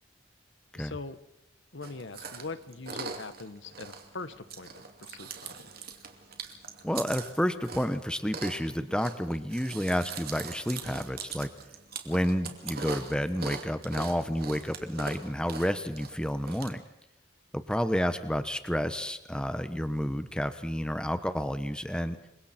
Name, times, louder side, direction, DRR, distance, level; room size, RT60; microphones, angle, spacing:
voice 1, 0.7-1.2 1.7-5.5, left 3 dB, 70° left, 12 dB, 1.3 m, -42 dB
Chewing mastication, 1.8-16.7, right 5 dB, 50° right, 2.7 m, -42 dB
voice 2, 6.8-11.5 12.0-16.8 17.5-22.2, equal, 5° left, 10 dB, 1.1 m, -30 dB
28.5 x 24.0 x 4.4 m, 0.87 s
head